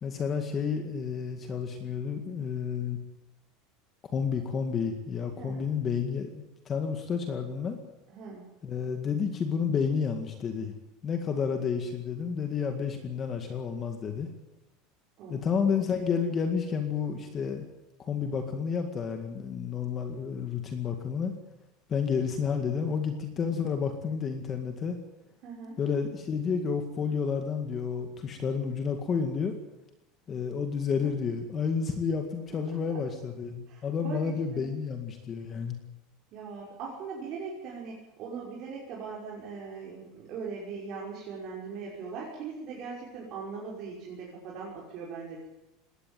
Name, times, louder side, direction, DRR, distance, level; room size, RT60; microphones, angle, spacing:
voice 1, 0.0-3.0 4.1-7.8 8.6-10.7 11.0-14.3 15.3-17.6 18.1-21.3 21.9-25.0 25.8-29.6 30.3-35.8, left 6 dB, 20° left, 6 dB, 2.0 m, -30 dB
voice 2, 8.1-8.5 15.2-15.5 25.4-25.8 32.5-33.0 33.7-34.7 36.3-45.5, right 5 dB, 35° right, -4 dB, 5.9 m, -40 dB
21.0 x 17.5 x 9.2 m, 0.93 s
cardioid pair, 175°, 0 cm